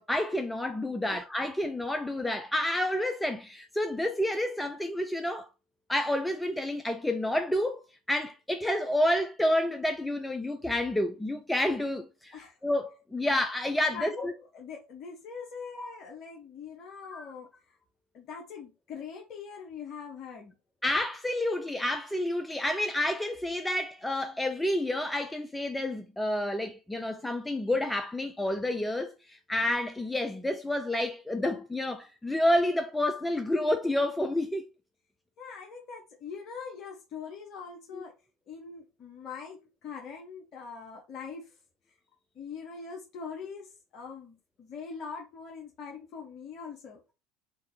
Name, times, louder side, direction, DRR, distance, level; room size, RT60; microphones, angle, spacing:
voice 1, 0.0-5.5 5.9-7.8 8.1-14.3 15.8-16.0 17.1-17.3 20.8-34.7 37.9-38.0, left 1 dB, 5° left, 0.3 m, -29 dB
voice 2, 13.9-17.8 18.1-20.5 35.4-38.1 38.5-41.5 42.4-47.0, left 5 dB, 45° left, 0.6 m, -42 dB
2.7 x 2.3 x 3.4 m
figure-of-eight pair, 65°, 0 cm